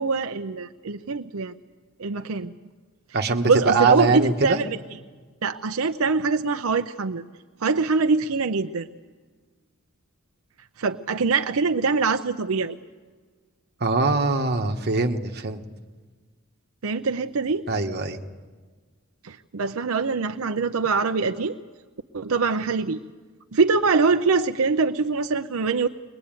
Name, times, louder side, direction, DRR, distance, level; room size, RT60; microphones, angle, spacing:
voice 1, 0.0-1.5 2.0-2.5 3.2-4.7 5.4-7.2 7.6-8.9 10.8-12.8 16.8-17.7 19.2-21.6 22.1-23.0 23.5-25.9, right 4 dB, 80° right, 7 dB, 0.6 m, -23 dB
voice 2, 3.1-4.6 13.8-15.6 17.7-18.2, right 3 dB, 50° right, 4 dB, 1.4 m, -22 dB
22.5 x 21.0 x 9.0 m, 1.4 s
head